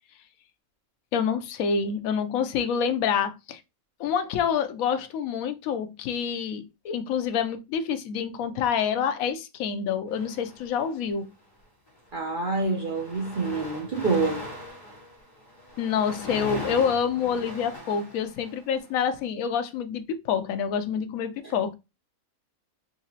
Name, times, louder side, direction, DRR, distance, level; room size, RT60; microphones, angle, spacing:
voice 1, 1.1-3.6 4.0-11.3 15.8-21.7, left 7 dB, 75° left, 1.0 m, -27 dB
sound 1, 10.1-11.1 11.9-12.1 12.4-18.8, left 1 dB, 25° left, 2.0 m, -39 dB
voice 2, 12.1-14.4, right 3 dB, 50° right, 0.7 m, -27 dB
3.9 x 2.9 x 2.7 m
omnidirectional pair, 1.5 m